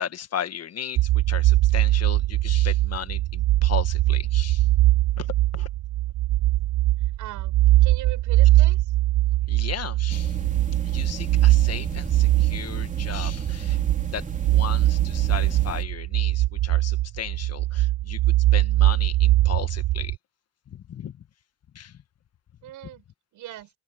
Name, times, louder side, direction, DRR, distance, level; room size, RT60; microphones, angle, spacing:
voice 1, 0.0-4.7 5.2-5.7 9.5-10.4 10.8-13.8 14.1-18.2 18.5-20.2 20.7-21.2 21.7-22.0, left 9 dB, 55° left, 1.6 m, -36 dB
sound 1, 1.0-20.2, right 16 dB, 65° right, 0.8 m, -21 dB
voice 2, 7.2-8.9 22.6-23.0 23.3-23.7, right 14 dB, 85° right, 7.2 m, -40 dB
sound 2, 10.1-15.8, right 4 dB, 25° right, 3.4 m, -34 dB
open air
cardioid pair, 90°, 30 cm